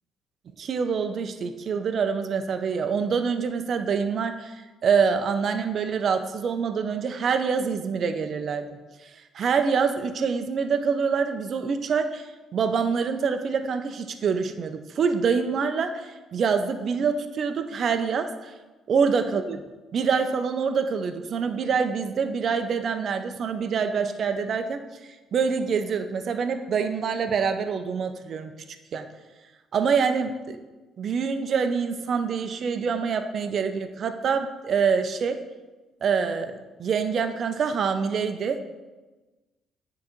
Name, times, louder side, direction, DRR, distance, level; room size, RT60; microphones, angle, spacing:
voice 1, 0.6-4.5 4.8-8.7 9.3-12.2 12.5-18.3 18.9-19.6 19.9-24.8 25.3-28.5 28.9-29.0 29.7-30.6 31.0-35.4 36.0-38.6, right 6 dB, 50° right, 8 dB, 0.5 m, -25 dB
9.4 x 3.8 x 3.0 m, 1.2 s
cardioid pair, 120°, 0 cm